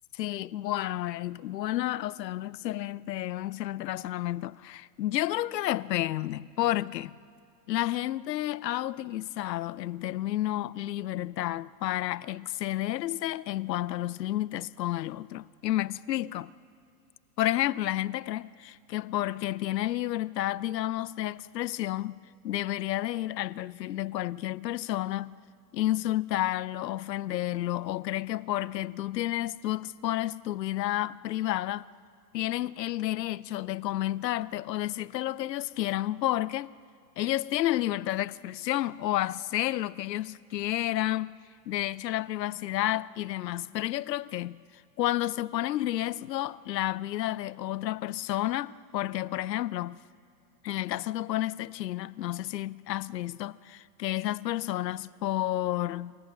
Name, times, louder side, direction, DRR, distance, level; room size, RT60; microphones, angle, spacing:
voice 1, 0.1-7.2 7.7-16.5 17.4-22.1 22.4-25.3 25.7-31.8 32.3-36.7 37.2-41.4 41.7-44.6 45.0-50.0 50.6-56.2, left 14 dB, 75° left, 0.7 m, -31 dB
28.0 x 14.5 x 7.5 m
hypercardioid pair, 130°, 50 cm